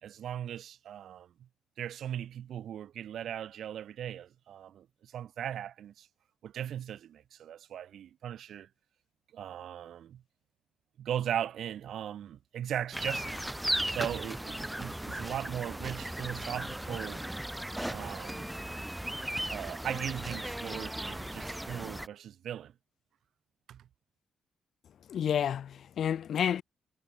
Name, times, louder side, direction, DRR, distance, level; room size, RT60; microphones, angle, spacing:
voice 1, 0.0-1.3 1.8-6.1 6.4-8.7 9.3-10.2 11.0-13.5 13.9-17.2 17.9-18.5 19.5-22.7 23.7-23.9, right 10 dB, 65° right, 4.9 m, -38 dB
sound 1, 12.9-22.1, right 1 dB, 5° right, 0.9 m, -36 dB
voice 2, 25.1-26.6, left 9 dB, 55° left, 2.2 m, -30 dB
cardioid pair, 155°, 0 cm